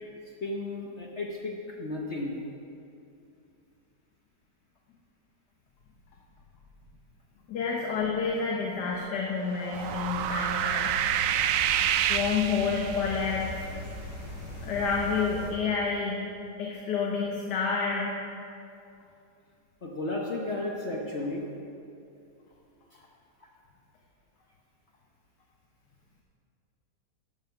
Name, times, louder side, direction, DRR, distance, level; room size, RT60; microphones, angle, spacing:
voice 1, 0.4-2.4 19.8-21.4, left 2 dB, 45° left, 0 dB, 1.1 m, -33 dB
voice 2, 7.5-10.9 12.1-13.5 14.6-16.2 16.6-18.2, left 5 dB, 75° left, -2 dB, 1.8 m, -29 dB
sound 1, 9.5-13.2, right 10 dB, 70° right, 0.8 m, -28 dB
sound 2, 9.7-15.5, left 1 dB, 15° right, 3.7 m, -40 dB
12.5 x 9.3 x 5.8 m, 2.6 s
omnidirectional pair, 1.8 m